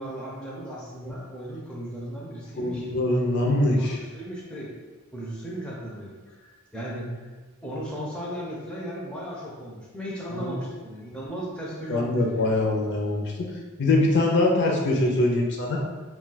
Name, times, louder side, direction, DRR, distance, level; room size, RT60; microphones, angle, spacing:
voice 1, 0.0-2.9 3.8-3.9 4.1-4.7 5.1-7.2 7.6-12.5, equal, 5° left, -5 dB, 0.5 m, -36 dB
voice 2, 2.6-4.0 10.4-10.5 11.9-13.5 13.8-15.8, left 2 dB, 60° left, -1 dB, 0.5 m, -23 dB
2.3 x 2.3 x 3.8 m, 1.3 s
head